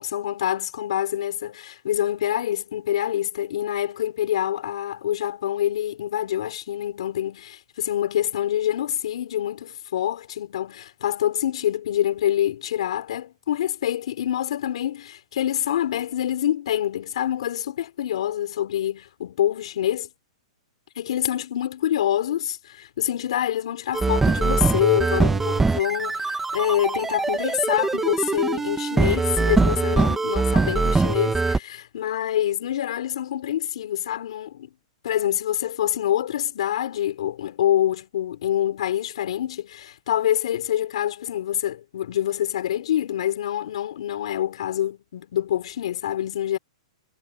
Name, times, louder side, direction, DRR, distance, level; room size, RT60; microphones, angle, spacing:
voice 1, 0.0-20.1 21.0-34.7 35.0-46.6, left 11 dB, 70° left, 4.3 m, -26 dB
sound 1, 23.9-31.6, right 3 dB, 5° right, 1.9 m, -22 dB
hypercardioid pair, 150°, 3 cm